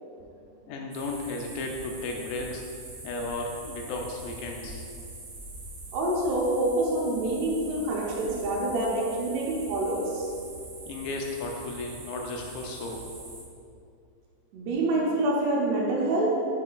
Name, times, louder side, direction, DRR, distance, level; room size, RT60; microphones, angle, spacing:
voice 1, 0.7-2.6 3.0-4.8 10.9-13.0, left 2 dB, 80° left, 1 dB, 2.1 m, -34 dB
sound 1, 0.9-13.4, right 2 dB, 65° right, 2.4 m, -43 dB
voice 2, 5.9-10.3 14.5-16.4, right 2 dB, 90° right, -3 dB, 2.9 m, -26 dB
7.3 x 5.6 x 2.3 m, 2.4 s
omnidirectional pair, 4.6 m